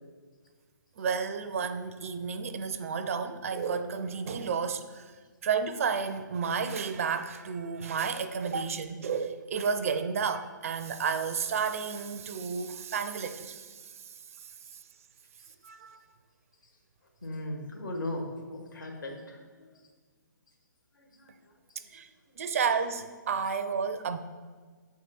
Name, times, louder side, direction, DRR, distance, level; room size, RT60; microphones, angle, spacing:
voice 1, 1.0-5.1 5.4-14.8 15.6-16.0 21.9-22.1 22.4-24.2, right 6 dB, 45° right, 11 dB, 0.4 m, -32 dB
voice 2, 17.2-19.7 20.9-21.3 21.7-21.9, left 1 dB, 70° left, 1 dB, 1.7 m, -38 dB
8.1 x 4.7 x 4.2 m, 1.5 s
figure-of-eight pair, 130°, 11 cm